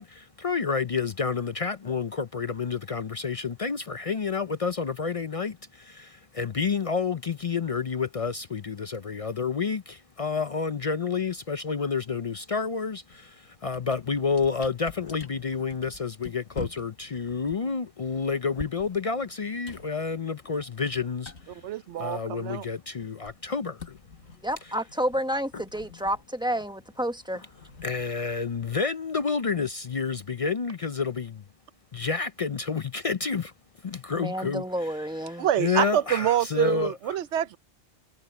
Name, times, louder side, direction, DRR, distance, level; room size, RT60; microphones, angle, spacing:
voice 1, 0.0-21.6 22.0-24.0 25.5-25.6 27.8-31.4 31.9-33.5 33.8-34.9 35.3-37.2, left 5 dB, 45° left, 0.5 m, -29 dB
sound 1, 13.1-13.3 13.6-22.5 22.7-28.7, left 4 dB, 75° left, 2.0 m, -47 dB
voice 2, 21.6-22.7 35.4-37.6, right 11 dB, 85° right, 1.0 m, -26 dB
voice 3, 24.4-27.4 34.2-35.5, equal, 5° right, 1.1 m, -30 dB
omnidirectional pair, 1.1 m